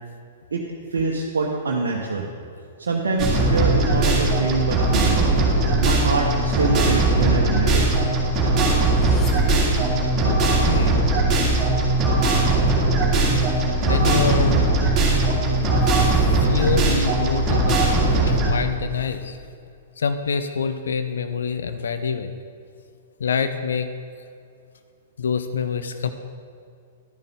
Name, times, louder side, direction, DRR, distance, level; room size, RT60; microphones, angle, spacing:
voice 1, 0.9-2.3 2.8-5.3 5.8-7.9, right 3 dB, 65° right, -1 dB, 0.9 m, -25 dB
sound 1, 3.2-18.5, right 2 dB, 20° right, 2.2 m, -19 dB
sound 2, 8.5-10.2, left 7 dB, 20° left, 0.9 m, -33 dB
voice 2, 10.2-11.0 13.2-13.3 13.9-14.8 15.9-19.4 20.0-22.4 23.2-23.9 25.2-26.1, left 6 dB, 65° left, 9 dB, 0.5 m, -26 dB
12.0 x 10.5 x 3.6 m, 2.4 s
figure-of-eight pair, 105°, 0 cm